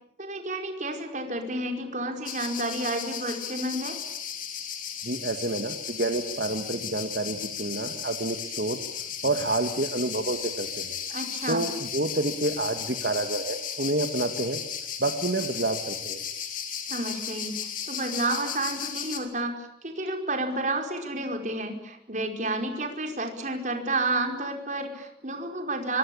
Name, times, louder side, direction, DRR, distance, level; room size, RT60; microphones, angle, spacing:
voice 1, 0.2-4.0 11.1-11.7 16.9-26.0, right 2 dB, 45° right, 4 dB, 5.1 m, -30 dB
sound 1, 2.2-19.2, left 8 dB, 50° left, 3.9 m, -35 dB
voice 2, 5.0-8.8 9.2-11.0 11.5-14.6 15.0-16.2, right 2 dB, 65° right, 6 dB, 1.9 m, -29 dB
25.0 x 25.0 x 8.8 m, 0.78 s
head